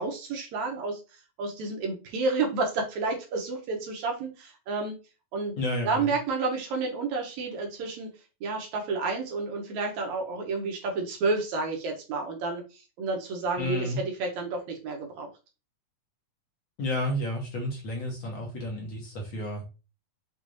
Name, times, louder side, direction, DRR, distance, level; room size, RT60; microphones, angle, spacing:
voice 1, 0.0-5.0 5.3-5.5 5.8-8.1 8.4-15.3, right 3 dB, 70° right, 2 dB, 1.9 m, -30 dB
voice 2, 5.6-6.1 13.6-14.0 16.8-19.7, left 1 dB, 55° left, -1 dB, 1.4 m, -31 dB
6.3 x 3.0 x 2.6 m, 0.30 s
omnidirectional pair, 3.8 m